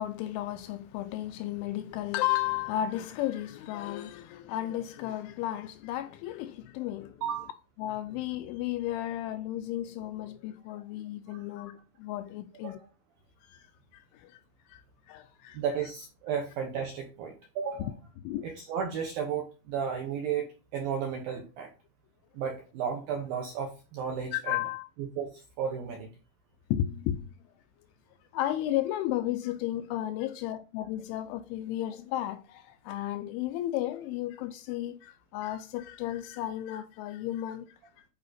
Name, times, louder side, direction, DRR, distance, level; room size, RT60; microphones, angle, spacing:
voice 1, 0.0-7.2 7.8-12.8 13.4-13.7 13.9-14.4 14.7-15.6 17.8-17.9 18.2-18.5 24.3-24.9 26.7-27.3 28.3-38.1, left 13 dB, 85° left, 2.8 m, -34 dB
voice 2, 15.5-17.9 18.4-21.7 22.3-24.6 25.2-26.1, right 7 dB, 75° right, 2.1 m, -33 dB
10.5 x 5.0 x 4.1 m
omnidirectional pair, 5.8 m